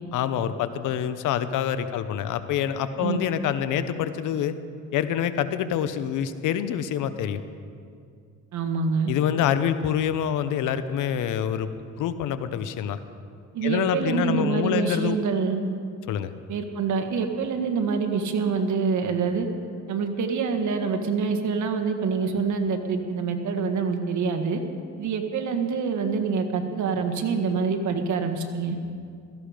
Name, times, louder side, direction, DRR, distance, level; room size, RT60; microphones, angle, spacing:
voice 1, 0.1-4.5 4.9-7.4 9.1-11.7 12.0-13.0 13.6-15.2 16.1-16.3, left 9 dB, 85° left, 11 dB, 0.9 m, -26 dB
voice 2, 8.5-9.1 13.5-15.6 16.5-19.5 19.9-24.6 25.0-28.8, right 5 dB, 70° right, 5 dB, 1.7 m, -26 dB
17.0 x 15.0 x 5.1 m, 2.3 s
cardioid pair, 90°, 30 cm